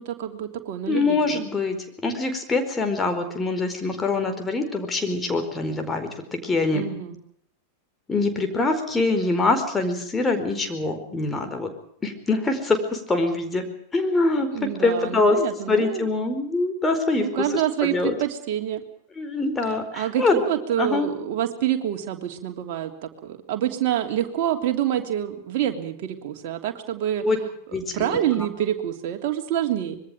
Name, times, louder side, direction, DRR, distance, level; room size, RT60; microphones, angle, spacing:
voice 1, 0.0-1.4 6.7-7.2 14.5-16.1 17.2-18.8 19.7-27.5 27.9-30.0, right 11 dB, 45° right, 4 dB, 3.2 m, -27 dB
voice 2, 0.9-1.8 2.0-6.9 8.1-11.7 12.0-13.7 13.9-15.4 15.7-17.3 17.8-18.1 19.2-20.4 20.8-21.1 27.2-27.4 27.7-28.5, left 3 dB, 15° left, 5 dB, 4.7 m, -24 dB
25.5 x 22.5 x 5.1 m, 0.65 s
figure-of-eight pair, 90°, 0 cm